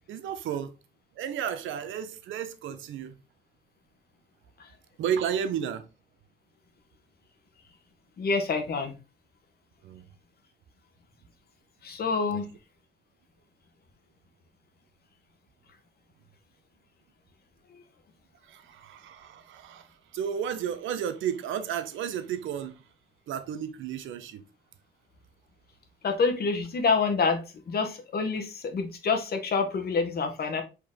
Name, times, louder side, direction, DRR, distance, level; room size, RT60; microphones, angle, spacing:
voice 1, 0.1-0.7 1.2-3.2 5.0-5.9 9.8-10.1 12.3-12.4 18.4-22.8 23.3-24.4, right 8 dB, 80° right, 0.7 m, -33 dB
voice 2, 8.2-9.0 11.8-12.5 17.7-17.8 26.0-30.6, left 4 dB, 50° left, 1.0 m, -27 dB
4.4 x 2.9 x 3.5 m
cardioid pair, 90°, 20 cm